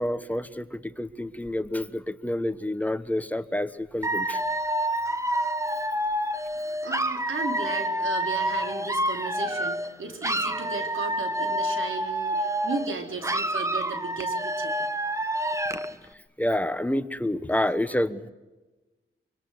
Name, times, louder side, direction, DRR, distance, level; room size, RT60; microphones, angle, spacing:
voice 1, 0.0-4.4 15.5-15.7 16.4-18.3, left 1 dB, 5° left, 11 dB, 1.2 m, -28 dB
Dog / Alarm, 4.0-9.9 10.2-12.9 13.2-15.9, right 1 dB, 15° right, 1.4 m, -28 dB
voice 2, 6.6-14.7, right 4 dB, 70° right, 4 dB, 4.2 m, -35 dB
25.0 x 24.5 x 8.0 m, 1.1 s
wide cardioid pair, 110°, 21 cm